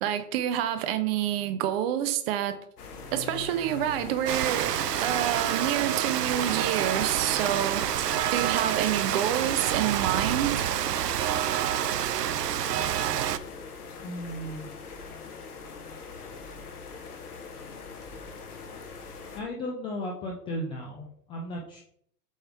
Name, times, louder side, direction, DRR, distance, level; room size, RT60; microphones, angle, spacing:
voice 1, 0.0-2.6 3.1-4.7 5.0-7.9 8.3-10.7, right 11 dB, 40° right, 0.8 m, -28 dB
sound 1, 2.8-19.4, left 4 dB, 65° left, 1.5 m, -42 dB
Rain, 4.3-13.4, right 10 dB, 75° right, 0.6 m, -28 dB
voice 2, 14.0-14.7 19.3-21.8, equal, 10° left, 0.4 m, -35 dB
8.0 x 3.3 x 4.6 m
figure-of-eight pair, 100°, 48 cm